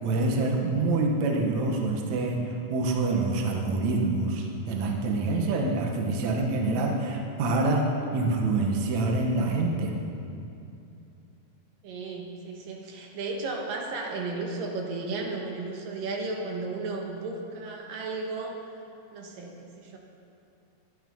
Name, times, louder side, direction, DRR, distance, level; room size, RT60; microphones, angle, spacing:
voice 1, 0.0-7.9 8.1-10.0, right 2 dB, 60° right, 1 dB, 2.6 m, -26 dB
voice 2, 11.8-18.6 19.1-20.0, right 3 dB, 75° right, 1 dB, 3.1 m, -34 dB
23.5 x 10.0 x 5.6 m, 2.7 s
omnidirectional pair, 4.0 m